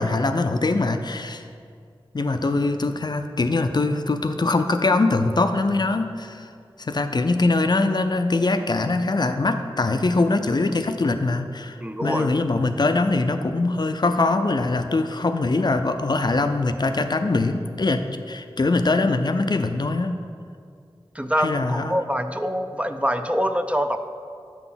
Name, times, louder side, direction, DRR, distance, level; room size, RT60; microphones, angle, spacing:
voice 1, 0.0-1.4 2.1-6.5 6.8-20.2 21.4-22.0, left 3 dB, 50° left, 8 dB, 0.4 m, -22 dB
voice 2, 11.8-12.3 21.1-24.0, equal, 15° right, 8 dB, 0.4 m, -25 dB
7.4 x 4.0 x 5.7 m, 2.2 s
wide cardioid pair, 50°, 9 cm